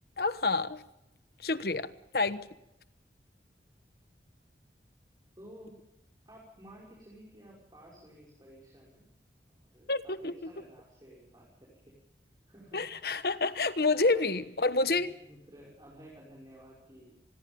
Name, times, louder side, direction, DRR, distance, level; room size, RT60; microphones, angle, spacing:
voice 1, 0.2-0.8 1.4-2.4 9.9-10.3 12.7-15.1, left 3 dB, 60° left, 12 dB, 1.2 m, -28 dB
voice 2, 5.4-5.7 6.3-9.0 9.5-11.9 12.5-12.8 13.9-14.5 14.9-17.1, equal, 20° right, -4 dB, 5.9 m, -54 dB
26.0 x 21.0 x 5.4 m, 0.87 s
head